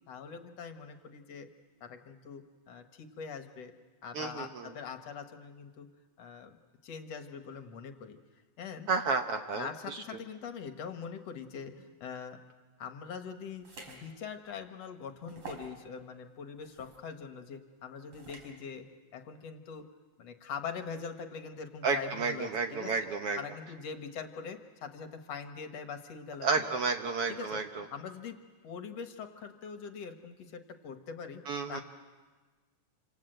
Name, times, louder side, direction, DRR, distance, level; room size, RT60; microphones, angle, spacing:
voice 1, 0.1-1.5 1.8-3.7 4.0-5.9 6.2-6.6 6.8-8.2 8.6-8.9 9.6-12.4 12.8-18.9 19.1-19.8 20.2-22.9 23.4-26.7 27.3-27.6 27.9-28.4 28.6-31.4 31.7-31.8, left 6 dB, 60° left, 6 dB, 2.2 m, -43 dB
voice 2, 4.1-4.7 8.9-10.0 21.8-23.4 26.4-27.8 31.5-31.8, right 4 dB, 60° right, 5 dB, 1.7 m, -31 dB
sound 1, 13.6-14.0 14.5-14.6 15.3-15.7 16.6-17.0 18.1-18.5, right 4 dB, 45° right, 4.6 m, -47 dB
28.0 x 26.0 x 7.8 m, 1.3 s
omnidirectional pair, 3.5 m